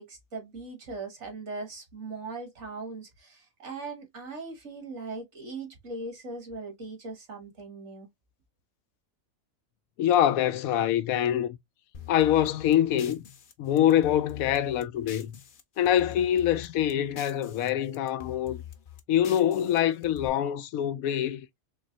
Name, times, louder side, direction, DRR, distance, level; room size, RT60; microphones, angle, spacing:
voice 1, 0.0-8.1, right 3 dB, 55° right, 1.7 m, -39 dB
voice 2, 10.0-11.6 12.1-13.2 13.6-15.3 15.8-18.6 19.1-21.4, left 11 dB, 90° left, 1.0 m, -25 dB
sound 1, 11.9-15.6 15.9-17.7 17.9-20.3, left 9 dB, 50° left, 0.7 m, -45 dB
3.9 x 3.1 x 2.7 m
omnidirectional pair, 1.4 m